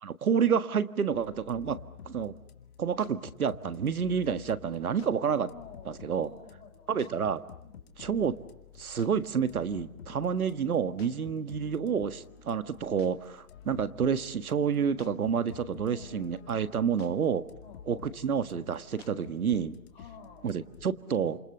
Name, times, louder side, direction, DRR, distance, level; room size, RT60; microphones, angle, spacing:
voice 1, 0.0-1.8 2.1-2.3 2.8-5.5 5.9-6.3 6.9-7.4 8.0-8.4 8.8-17.4 17.9-19.8 20.4-21.4, right 7 dB, 85° right, 13 dB, 1.8 m, -29 dB
sound 1, 1.1-20.9, left 8 dB, 45° left, 2.3 m, -51 dB
voice 2, 5.5-7.0 7.6-7.8 10.0-10.3 15.8-16.3 17.6-17.8 19.9-20.5, left 6 dB, 15° left, 4 dB, 4.3 m, -51 dB
29.0 x 28.0 x 6.8 m, 0.79 s
hypercardioid pair, 160°, 42 cm